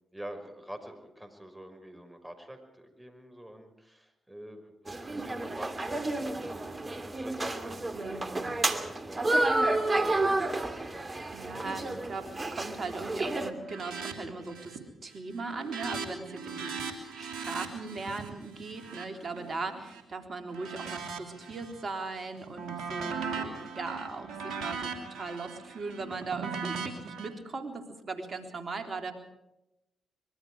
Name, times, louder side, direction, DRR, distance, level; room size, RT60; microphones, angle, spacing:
voice 1, 0.1-6.6 7.0-9.6 9.9-10.5 10.9-11.1 11.5-11.9, right 1 dB, 10° right, 7 dB, 5.9 m, -46 dB
sound 1, 4.9-13.5, right 2 dB, 35° right, 2.8 m, -31 dB
voice 2, 7.9-8.5 11.3-29.1, right 3 dB, 50° right, 5 dB, 3.9 m, -39 dB
sound 2, 13.7-14.1 14.4-14.9 15.2-20.0 20.5-21.8 22.2-27.3, right 5 dB, 75° right, 3.0 m, -39 dB
25.0 x 22.5 x 5.0 m, 0.90 s
hypercardioid pair, 40°, 0 cm